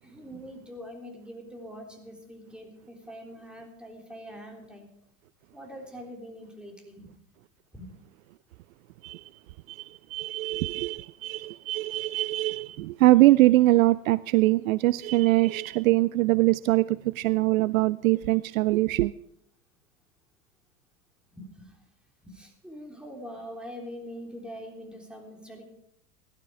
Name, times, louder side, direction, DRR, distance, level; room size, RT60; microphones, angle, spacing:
voice 1, 0.0-4.9 5.5-7.2 7.7-7.9 21.3-21.9 22.2-25.6, equal, ahead, 3.5 m, -43 dB
voice 2, 9.7-19.1, right 18 dB, 60° right, 0.5 m, -23 dB
16.5 x 12.0 x 4.9 m
hypercardioid pair, 90°, 46 cm